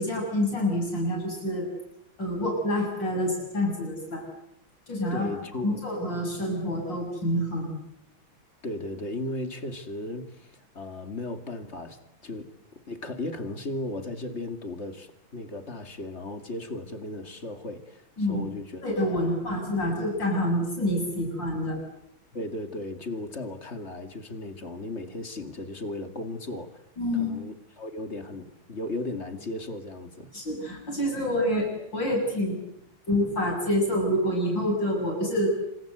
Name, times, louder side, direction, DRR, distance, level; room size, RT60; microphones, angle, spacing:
voice 1, 0.0-1.7 2.2-4.2 4.9-7.7 18.2-18.4 18.8-21.8 27.0-27.4 30.3-32.6 33.1-35.5, left 1 dB, 60° left, 0 dB, 8.3 m, -27 dB
voice 2, 5.1-5.8 8.6-19.3 22.3-26.9 27.1-30.3, left 2 dB, 35° left, 8 dB, 2.6 m, -36 dB
27.0 x 26.5 x 8.1 m, 0.76 s
omnidirectional pair, 2.2 m